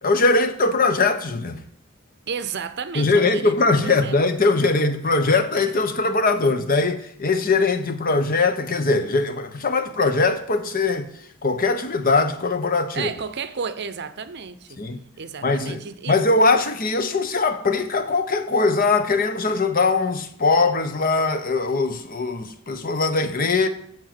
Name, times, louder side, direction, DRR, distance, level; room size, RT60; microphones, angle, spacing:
voice 1, 0.0-1.6 2.9-11.1 11.4-13.1 14.8-15.0 15.4-23.7, left 3 dB, 40° left, 0.9 m, -21 dB
voice 2, 2.3-3.5 3.8-4.2 12.9-14.8 15.2-16.3, right 6 dB, 50° right, 0.7 m, -32 dB
7.7 x 7.5 x 7.5 m
head